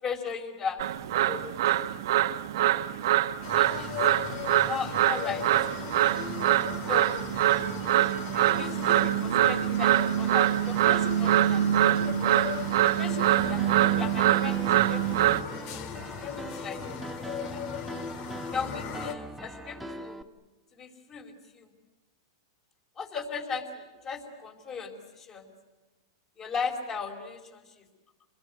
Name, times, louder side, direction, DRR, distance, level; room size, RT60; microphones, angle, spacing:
voice 1, 0.0-0.8 1.2-2.0 3.5-3.9 4.5-5.5 6.9-7.2 8.3-12.0 13.0-15.4 16.2-16.8 17.5-17.8 18.5-20.2 20.7-21.7 23.0-25.5 26.4-27.8, left 5 dB, 30° left, 3 dB, 4.9 m, -37 dB
sound 1, 0.8-15.4, right 12 dB, 70° right, 1.1 m, -24 dB
sound 2, 3.4-19.1, left 9 dB, 45° left, 2.0 m, -39 dB
Piano, 13.4-20.2, right 1 dB, 5° right, 1.0 m, -40 dB
28.0 x 21.5 x 9.5 m, 1.1 s
hypercardioid pair, 130°, 2 cm